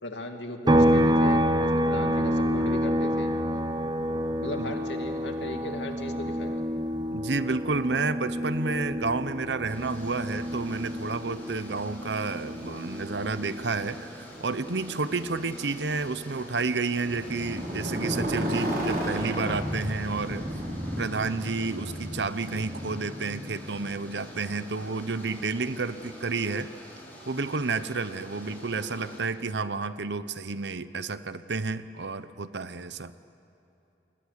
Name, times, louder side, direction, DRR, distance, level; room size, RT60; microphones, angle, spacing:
voice 1, 0.0-3.3 4.4-6.6, left 1 dB, 85° left, 4 dB, 2.4 m, -37 dB
sound 1, 0.7-14.2 14.6-16.8, equal, 25° right, 0.7 m, -28 dB
voice 2, 7.1-20.4 21.0-26.7 27.3-33.1, right 3 dB, 75° right, 13 dB, 0.9 m, -30 dB
sound 2, 9.7-29.2, equal, 10° left, 6.7 m, -47 dB
Motorcycle, 16.9-25.0, equal, 55° right, 5.2 m, -33 dB
29.0 x 21.5 x 8.3 m, 2.9 s
head